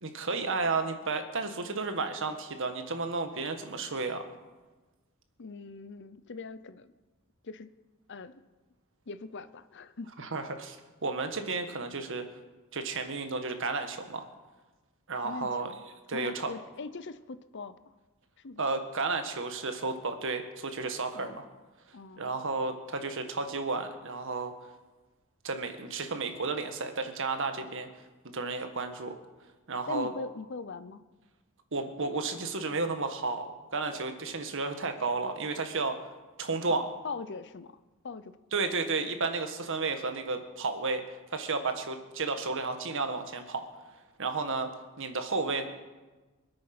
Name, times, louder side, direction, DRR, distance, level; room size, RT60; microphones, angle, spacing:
voice 1, 0.0-4.2 10.2-10.8 11.0-12.2 12.7-14.3 15.1-15.7 16.1-16.5 18.6-21.4 22.2-24.5 25.4-27.9 28.2-29.1 29.7-30.1 31.7-36.0 36.4-36.8 38.5-41.0 41.3-43.6 44.2-44.7 45.0-45.6, right 3 dB, 65° right, 7 dB, 1.6 m, -32 dB
voice 2, 5.4-6.9 7.4-7.7 8.1-8.4 9.1-10.2 15.2-15.8 16.1-17.8 18.4-18.6 21.1-21.4 21.9-22.3 29.9-31.0 36.7-37.8 38.0-38.3, left 4 dB, 55° left, 14 dB, 0.7 m, -41 dB
24.5 x 8.8 x 6.1 m, 1.2 s
head